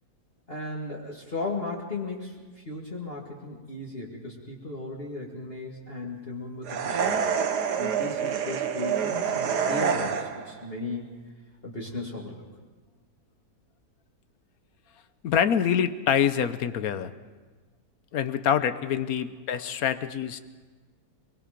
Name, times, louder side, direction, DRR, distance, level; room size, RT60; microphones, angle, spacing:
voice 1, 0.5-7.2 7.8-11.0 11.6-12.4, left 2 dB, 35° left, -3 dB, 2.2 m, -36 dB
sound 1, 6.7-10.5, right 7 dB, 85° right, 1.7 m, -27 dB
voice 2, 15.2-17.1 18.1-20.4, left 8 dB, 65° left, 12 dB, 1.2 m, -25 dB
23.5 x 22.0 x 5.1 m, 1.3 s
omnidirectional pair, 1.7 m